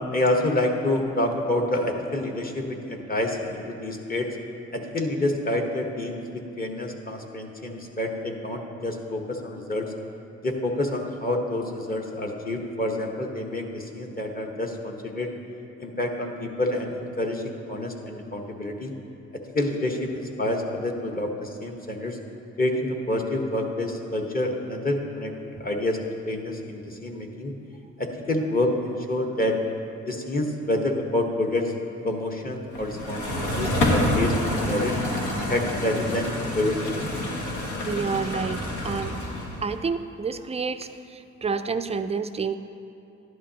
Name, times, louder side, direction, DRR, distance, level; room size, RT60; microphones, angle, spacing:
voice 1, 0.1-4.3 4.7-9.9 10.4-15.3 15.8-18.9 19.5-22.2 22.6-25.3 25.6-26.0 26.3-27.5 28.0-29.6 30.1-31.7 32.0-34.9 35.5-37.1, left 1 dB, 30° left, 1 dB, 1.2 m, -28 dB
sound 1, 32.7-39.7, left 1 dB, 80° left, 1.7 m, -27 dB
voice 2, 37.8-39.2 39.6-42.5, right 5 dB, 20° right, 9 dB, 0.4 m, -29 dB
12.0 x 11.0 x 2.9 m, 2.7 s
cardioid pair, 90°, 30 cm